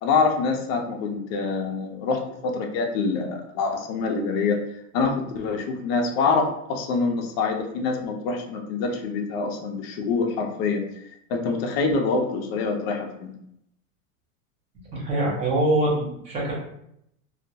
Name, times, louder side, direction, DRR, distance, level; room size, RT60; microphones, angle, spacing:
voice 1, 0.0-4.6 4.9-10.8 11.3-13.3, left 4 dB, 45° left, 3 dB, 0.5 m, -25 dB
voice 2, 14.9-16.5, right 1 dB, 15° right, -5 dB, 0.5 m, -24 dB
2.2 x 2.1 x 2.6 m, 0.76 s
supercardioid pair, 140°, 44 cm